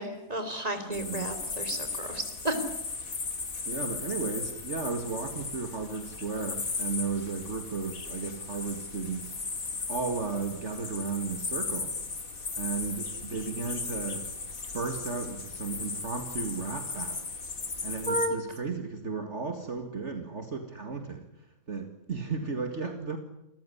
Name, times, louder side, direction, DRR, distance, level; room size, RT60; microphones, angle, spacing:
voice 1, 0.0-2.6 18.1-18.4, right 1 dB, 25° right, 8 dB, 3.6 m, -32 dB
sound 1, 0.9-18.3, left 4 dB, 75° left, 3.0 m, -36 dB
voice 2, 0.9-1.3 3.7-9.4 9.9-11.9 12.6-14.3 14.7-17.3 17.8-21.3 21.7-23.2, right 4 dB, 55° right, 6 dB, 2.4 m, -34 dB
28.0 x 15.0 x 9.9 m, 0.89 s
omnidirectional pair, 1.5 m